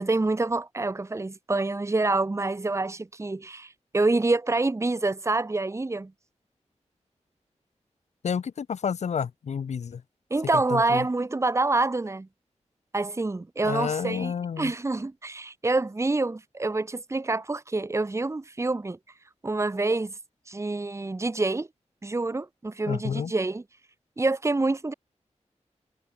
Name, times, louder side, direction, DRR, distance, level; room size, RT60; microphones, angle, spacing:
voice 1, 0.0-6.1 10.3-12.3 12.9-19.0 19.4-20.1 20.5-21.7 22.0-23.6 24.2-24.9, right 2 dB, 25° right, 1.1 m, -27 dB
voice 2, 8.2-10.0 10.7-11.1 13.6-14.7 22.9-23.3, left 7 dB, 70° left, 0.5 m, -30 dB
wide cardioid pair, 115°, 12 cm